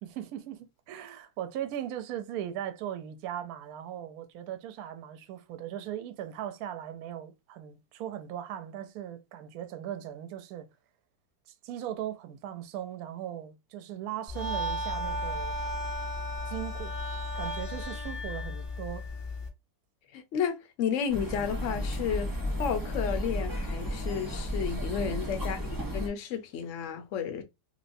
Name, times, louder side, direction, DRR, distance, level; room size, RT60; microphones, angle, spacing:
voice 1, 0.0-10.7 11.5-15.5 16.5-17.0 17.4-19.1 25.0-25.1, right 11 dB, 70° right, 0.9 m, -38 dB
sound 1, 14.3-19.5, left 1 dB, 15° left, 1.1 m, -34 dB
voice 2, 20.1-22.3 22.6-27.4, left 7 dB, 65° left, 0.7 m, -32 dB
sound 2, 21.1-26.1, equal, 35° right, 0.3 m, -33 dB
3.0 x 3.0 x 2.5 m
omnidirectional pair, 2.0 m